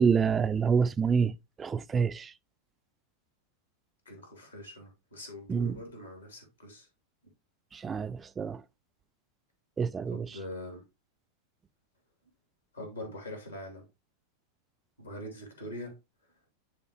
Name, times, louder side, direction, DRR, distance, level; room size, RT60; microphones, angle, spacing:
voice 1, 0.0-1.3 1.6-2.3 5.5-5.8 7.7-8.6 9.8-10.4, right 6 dB, 20° right, 0.3 m, -27 dB
voice 2, 4.0-6.9 10.1-10.8 12.7-13.8 15.0-16.0, left 1 dB, 80° left, 2.8 m, -43 dB
10.5 x 3.6 x 2.9 m
figure-of-eight pair, 90°, 0 cm